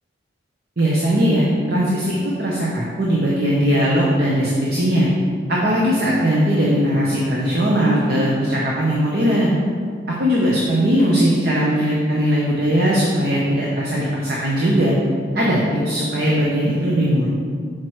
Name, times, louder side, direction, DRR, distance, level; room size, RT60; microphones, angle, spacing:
voice 1, 0.8-5.1 5.5-9.5 10.1-14.9 15.3-17.3, equal, 55° right, -5 dB, 0.8 m, -19 dB
5.9 x 4.7 x 4.6 m, 2.1 s
head